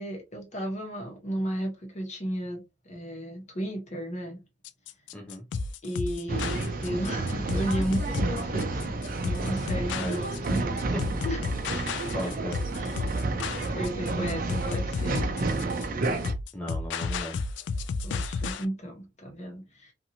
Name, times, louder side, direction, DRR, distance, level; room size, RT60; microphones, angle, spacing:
voice 1, 0.0-4.4 5.8-8.9 9.2-10.8 11.2-11.7 12.7-13.0 13.5-15.7 18.0-19.9, equal, 40° left, 1.1 m, -34 dB
sound 1, 4.6-18.7, left 4 dB, 65° left, 0.3 m, -32 dB
voice 2, 5.1-5.5 9.9-10.6 11.1-11.2 12.1-12.6 16.5-17.4, equal, 5° left, 0.5 m, -37 dB
Male speech man speaking / Chatter / Rattle, 6.3-16.3, right 2 dB, 50° right, 0.5 m, -30 dB
2.8 x 2.5 x 2.7 m
head